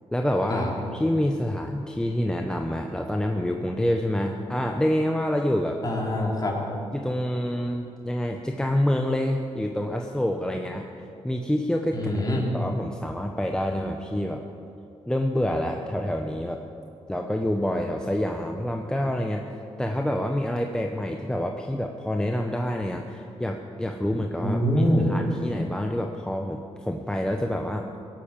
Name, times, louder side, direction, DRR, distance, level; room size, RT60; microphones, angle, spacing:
voice 1, 0.1-5.8 6.9-12.1 12.5-14.4 15.1-16.6 17.1-19.4 19.8-27.9, left 1 dB, 5° left, 3 dB, 0.8 m, -27 dB
voice 2, 5.8-6.5 11.9-12.5 24.4-25.1, equal, 35° left, -2 dB, 3.5 m, -24 dB
17.5 x 8.4 x 7.3 m, 2.7 s
cardioid pair, 85°, 11 cm